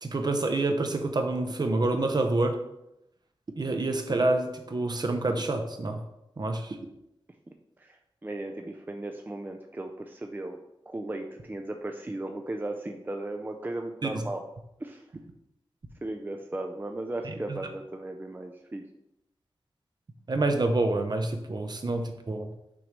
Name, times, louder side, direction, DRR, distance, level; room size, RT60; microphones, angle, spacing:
voice 1, 0.0-2.6 3.6-6.0 6.4-6.8 14.0-14.2 17.5-17.6 20.3-22.5, right 2 dB, 45° right, 5 dB, 0.8 m, -27 dB
voice 2, 7.8-10.6 10.9-14.4 14.8-15.0 16.0-18.8, right 2 dB, 20° right, 4 dB, 0.5 m, -36 dB
6.0 x 3.1 x 5.2 m, 0.84 s
wide cardioid pair, 85°, 10 cm